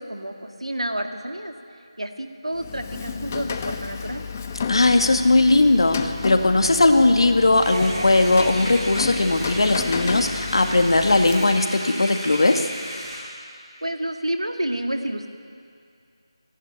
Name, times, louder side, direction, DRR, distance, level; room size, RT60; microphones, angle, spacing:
voice 1, 0.0-1.5 2.0-4.2 13.8-15.3, right 1 dB, 90° right, 5 dB, 2.3 m, -29 dB
Rain, 2.5-11.8, left 5 dB, 25° left, 1.0 m, -32 dB
voice 2, 4.7-12.7, left 2 dB, 60° left, 6 dB, 1.9 m, -18 dB
sound 1, 7.6-13.2, equal, 20° right, 7.6 m, -34 dB
29.0 x 11.5 x 9.6 m, 2.3 s
figure-of-eight pair, 165°, 3 cm